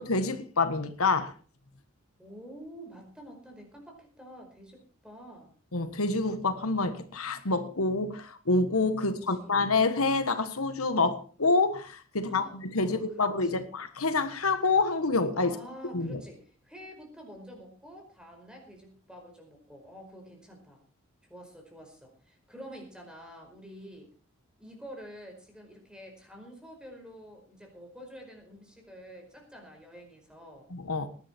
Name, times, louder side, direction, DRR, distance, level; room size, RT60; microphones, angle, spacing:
voice 1, 0.0-1.3 5.7-15.6 15.9-16.2 30.7-31.1, left 3 dB, 90° left, 1.5 m, -27 dB
voice 2, 2.2-5.5 9.0-9.5 12.2-12.6 12.8-13.7 15.4-20.8 21.3-24.1 24.6-30.7, equal, 5° right, 4.9 m, -48 dB
19.5 x 11.5 x 4.5 m
head